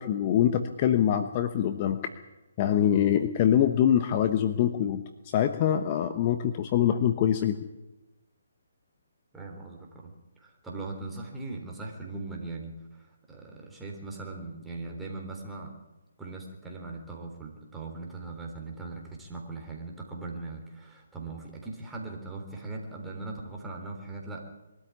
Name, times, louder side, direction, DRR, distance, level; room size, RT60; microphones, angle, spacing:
voice 1, 0.0-2.0 2.6-5.0 5.3-7.6, left 10 dB, 35° left, 9 dB, 1.1 m, -24 dB
voice 2, 9.3-15.7 16.2-24.5, right 3 dB, 5° right, -1 dB, 3.6 m, -40 dB
22.5 x 13.0 x 9.8 m, 1.1 s
hypercardioid pair, 150°, 0 cm